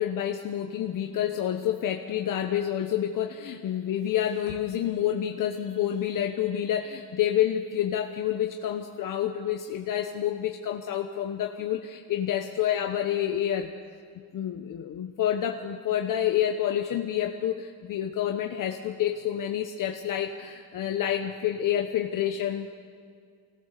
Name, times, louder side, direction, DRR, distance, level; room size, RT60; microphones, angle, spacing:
voice 1, 0.0-13.7 14.3-22.7, left 10 dB, 50° left, 4 dB, 1.1 m, -28 dB
25.0 x 19.0 x 6.8 m, 2.2 s
cardioid pair, 140°, 40 cm